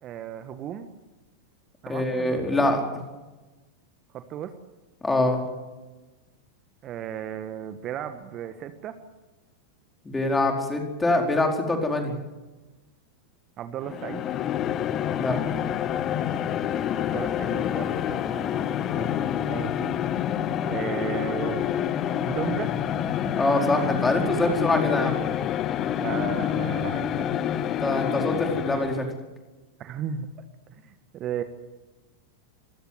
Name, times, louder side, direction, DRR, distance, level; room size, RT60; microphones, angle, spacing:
voice 1, 0.0-0.9 1.8-2.7 4.1-4.5 6.8-9.0 13.6-14.2 16.9-19.9 20.6-21.7 22.3-22.8 26.0-27.2 29.8-30.5 30.8-31.4, right 9 dB, 30° right, 9 dB, 1.6 m, -35 dB
voice 2, 1.9-2.8 5.0-5.4 10.0-12.2 15.0-15.4 23.4-25.2 27.8-29.0, left 2 dB, 10° left, 2 dB, 4.7 m, -24 dB
sound 1, 13.8-29.1, left 10 dB, 30° left, 1.1 m, -27 dB
26.5 x 16.0 x 8.1 m, 1.2 s
figure-of-eight pair, 90°, 0 cm